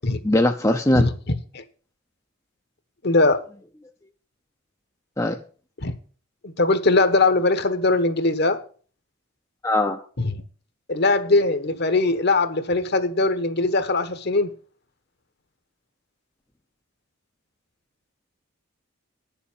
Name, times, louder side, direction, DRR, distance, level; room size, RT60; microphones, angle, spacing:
voice 1, 0.2-1.1 5.2-5.4 9.6-10.0, left 1 dB, 15° left, 0.6 m, -20 dB
voice 2, 0.9-1.6 3.0-3.4 5.8-5.9 6.4-8.6 10.2-10.4 10.9-14.5, left 2 dB, 50° left, 1.2 m, -21 dB
9.8 x 7.2 x 7.2 m
head